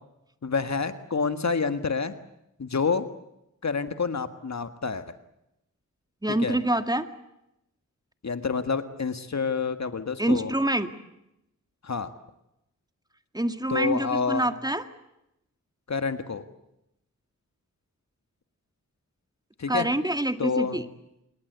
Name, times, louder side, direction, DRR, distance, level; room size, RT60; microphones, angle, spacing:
voice 1, 0.4-2.1 2.6-3.0 3.6-5.1 6.4-6.6 8.2-10.5 11.8-12.1 13.7-14.5 15.9-16.4 19.6-19.9 20.4-20.8, left 5 dB, 60° left, 9 dB, 1.7 m, -28 dB
voice 2, 6.2-7.1 10.2-10.9 13.3-14.8 19.7-20.8, right 1 dB, 10° right, 8 dB, 2.1 m, -26 dB
27.5 x 21.5 x 8.1 m, 0.84 s
wide cardioid pair, 60°, 32 cm